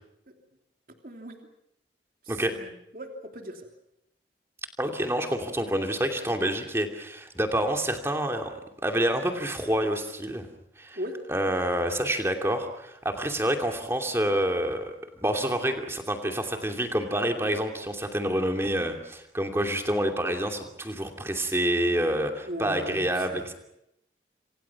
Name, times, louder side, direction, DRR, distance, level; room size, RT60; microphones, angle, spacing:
voice 1, 1.0-1.4 2.2-3.7 10.9-11.2 22.5-23.4, right 1 dB, 50° right, 3 dB, 3.0 m, -38 dB
voice 2, 4.8-10.5 10.8-11.0 11.3-23.5, right 1 dB, 15° right, 4 dB, 2.7 m, -28 dB
27.0 x 26.0 x 6.0 m, 0.83 s
head